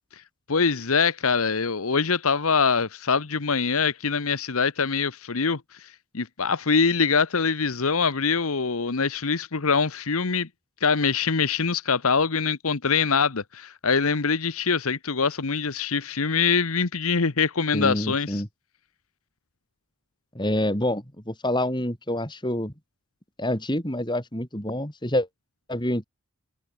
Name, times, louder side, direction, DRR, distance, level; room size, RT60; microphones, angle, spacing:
voice 1, 0.5-10.5 10.8-18.4, left 5 dB, 75° left, 1.1 m, -24 dB
voice 2, 17.7-18.5 20.4-22.7 23.4-25.3 25.7-26.0, left 1 dB, 20° left, 5.3 m, -27 dB
head